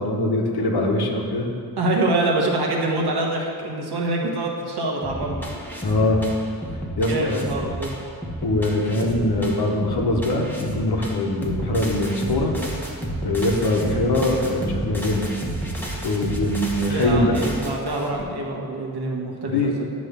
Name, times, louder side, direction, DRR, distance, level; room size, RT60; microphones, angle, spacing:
voice 1, 0.0-1.5 5.8-6.2 7.0-7.4 8.4-12.5 13.2-15.3 16.0-17.3 19.5-19.7, left 2 dB, 75° left, 1 dB, 1.1 m, -22 dB
voice 2, 1.8-5.4 5.9-6.0 7.0-7.9 16.8-19.9, right 2 dB, 75° right, -1 dB, 1.3 m, -25 dB
sound 1, 5.0-18.2, right 1 dB, 5° left, 1.0 m, -31 dB
9.5 x 3.2 x 6.6 m, 2.3 s
wide cardioid pair, 125°, 39 cm